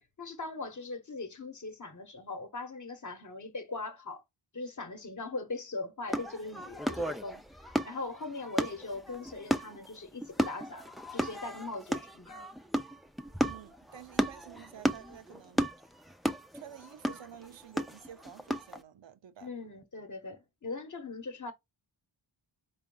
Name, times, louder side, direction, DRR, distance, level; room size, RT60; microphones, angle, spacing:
voice 1, 0.0-4.2 4.5-12.5 19.4-21.5, left 3 dB, 40° left, 1.0 m, -40 dB
sound 1, 6.1-18.8, right 1 dB, ahead, 0.4 m, -34 dB
voice 2, 13.4-15.7 16.5-19.5, right 9 dB, 65° right, 0.8 m, -50 dB
4.4 x 2.3 x 3.8 m
cardioid pair, 40°, 48 cm